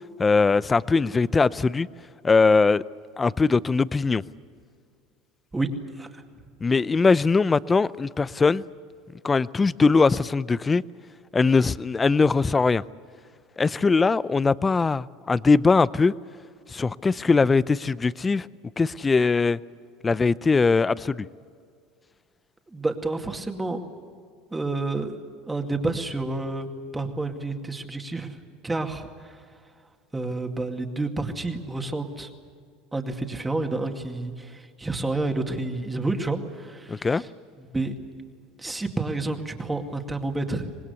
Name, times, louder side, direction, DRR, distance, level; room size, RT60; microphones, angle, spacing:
voice 1, 0.2-1.9 2.2-2.8 3.2-4.2 6.6-8.6 9.2-10.8 11.3-12.8 13.6-16.1 16.7-18.5 18.8-19.6 20.0-21.3 36.9-37.2, left 4 dB, 20° left, 0.5 m, -21 dB
voice 2, 22.7-23.8 24.5-25.1 25.5-26.7 26.9-28.4 28.6-29.3 30.1-32.3 32.9-37.2 37.7-37.9 38.6-40.7, right 2 dB, 15° right, 2.2 m, -29 dB
25.0 x 20.0 x 8.2 m
supercardioid pair, 100°, 0 cm